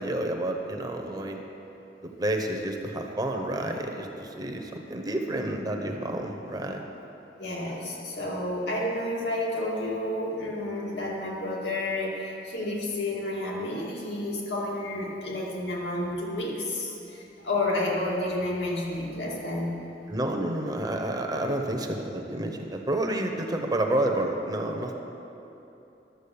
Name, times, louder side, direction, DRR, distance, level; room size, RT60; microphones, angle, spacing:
voice 1, 0.0-1.4 2.0-6.8 20.1-24.9, right 1 dB, 25° right, 3 dB, 0.9 m, -29 dB
voice 2, 7.4-19.8, left 1 dB, 80° left, -4 dB, 2.3 m, -30 dB
11.5 x 7.5 x 6.9 m, 3.0 s
head